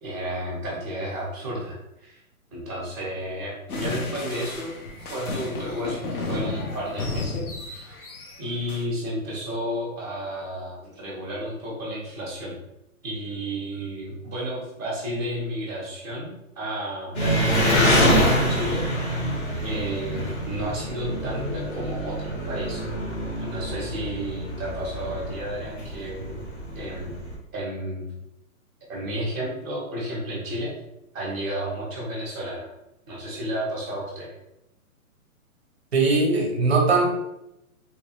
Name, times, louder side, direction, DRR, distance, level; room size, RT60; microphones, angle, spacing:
voice 1, 0.0-2.2 2.5-4.7 5.0-8.1 8.4-12.6 13.0-18.9 19.6-22.9 23.3-26.4 26.7-27.2 27.5-28.1 28.9-30.7 31.1-32.7 33.1-34.3, equal, 10° left, -5 dB, 0.4 m, -32 dB
sound 1, 3.7-8.8, left 3 dB, 75° left, 0.8 m, -33 dB
Engine, 17.1-27.3, equal, 45° left, 0.9 m, -25 dB
voice 2, 35.9-37.1, right 3 dB, 50° right, 2 dB, 0.5 m, -20 dB
2.9 x 2.0 x 2.9 m, 0.86 s
hypercardioid pair, 160°, 44 cm